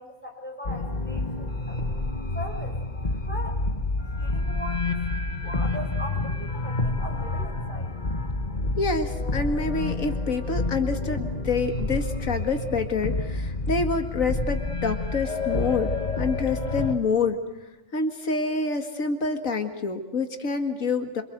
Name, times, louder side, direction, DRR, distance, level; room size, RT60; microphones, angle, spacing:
voice 1, 0.0-1.9 2.3-2.8 3.2-3.6 4.2-5.0 5.4-7.9, equal, 5° left, 0 dB, 6.7 m, -39 dB
sound 1, 0.6-16.9, left 2 dB, 35° left, 1.8 m, -29 dB
voice 2, 8.8-17.4 17.9-21.2, left 4 dB, 90° left, 6 dB, 2.4 m, -27 dB
27.0 x 26.5 x 8.0 m, 1.0 s
omnidirectional pair, 1.4 m